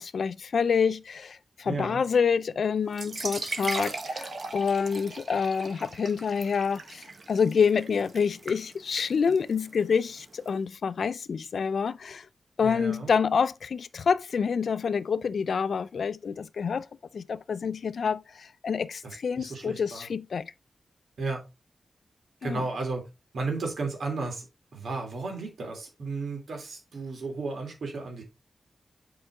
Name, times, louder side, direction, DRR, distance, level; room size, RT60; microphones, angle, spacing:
voice 1, 0.0-12.3 12.6-16.9 17.1-20.5 22.4-22.6, left 6 dB, 70° left, 0.4 m, -27 dB
voice 2, 1.6-2.0 12.6-13.1 19.0-20.1 21.2-21.4 22.4-23.0 23.3-24.4 24.7-28.2, right 3 dB, 85° right, 3.0 m, -34 dB
sound 1, 2.9-10.5, right 3 dB, 50° right, 1.1 m, -39 dB
8.2 x 4.7 x 3.6 m
wide cardioid pair, 125°, 0 cm